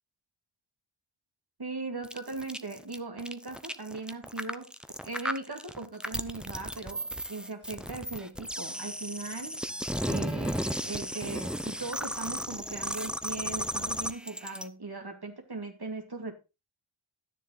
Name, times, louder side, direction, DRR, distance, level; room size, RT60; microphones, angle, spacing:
voice 1, 1.6-4.7 5.0-9.6 10.1-16.3, right 3 dB, 50° right, 3 dB, 2.6 m, -39 dB
sound 1, 2.0-14.7, equal, ahead, 0.8 m, -35 dB
12.5 x 7.0 x 4.0 m, 0.27 s
wide cardioid pair, 85°, 49 cm